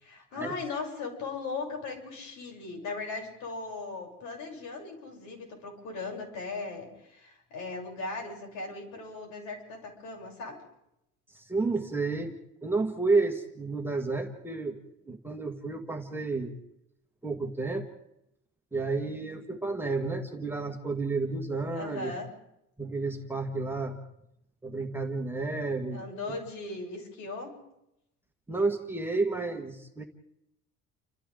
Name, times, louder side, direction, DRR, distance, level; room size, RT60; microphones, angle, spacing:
voice 1, 0.0-10.6 21.7-22.3 25.9-27.6, left 3 dB, 80° left, 1 dB, 8.0 m, -38 dB
voice 2, 11.3-16.6 17.2-17.9 18.7-22.1 22.8-24.0 24.6-26.0 28.5-30.0, right 3 dB, 5° right, 3 dB, 1.7 m, -31 dB
30.0 x 27.0 x 3.8 m, 0.82 s
cardioid pair, 160°, 31 cm